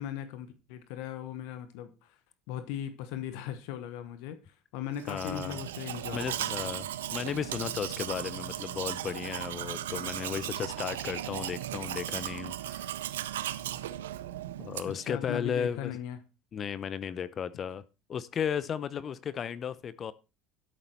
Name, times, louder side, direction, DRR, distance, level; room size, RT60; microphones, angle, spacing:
voice 1, 0.0-2.2 2.5-6.7 15.0-16.2, left 10 dB, 70° left, 1.1 m, -38 dB
Domestic sounds home sounds, 5.0-15.1, right 12 dB, 85° right, 0.6 m, -37 dB
voice 2, 5.1-5.6 6.1-13.0 14.6-15.9 16.5-17.8 18.1-20.1, left 7 dB, 40° left, 0.7 m, -35 dB
12.0 x 6.9 x 4.4 m
hypercardioid pair, 80°, 0 cm